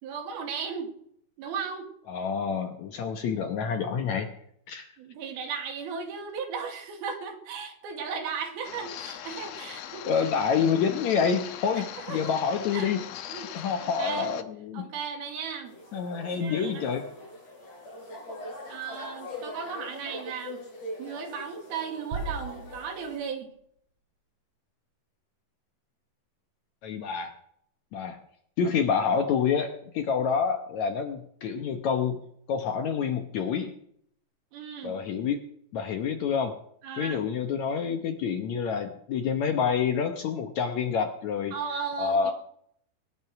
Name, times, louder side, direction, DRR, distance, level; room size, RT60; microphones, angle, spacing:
voice 1, 0.0-0.9 1.4-1.9 5.0-10.1 12.0-12.3 12.7-12.9 13.3-13.7 14.0-14.3 14.7-15.7 16.3-16.9 18.7-20.6 21.0-23.5 34.5-35.0 36.8-37.2 41.5-42.3, right 6 dB, 80° right, 4 dB, 4.1 m, -36 dB
voice 2, 2.1-4.3 4.7-4.9 10.0-13.0 13.5-14.8 15.9-17.0 26.8-27.3 27.9-28.2 28.6-32.2 32.5-33.7 34.8-35.4 35.7-36.5 37.0-41.5 42.0-42.3, left 6 dB, 70° left, 6 dB, 1.9 m, -27 dB
sound 1, 8.6-14.4, left 11 dB, 85° left, 1.5 m, -40 dB
sound 2, 15.6-23.2, left 1 dB, 45° left, 6.5 m, -41 dB
sound 3, 22.1-23.9, right 4 dB, 55° right, 5.2 m, -38 dB
21.0 x 10.5 x 5.9 m, 0.69 s
omnidirectional pair, 4.3 m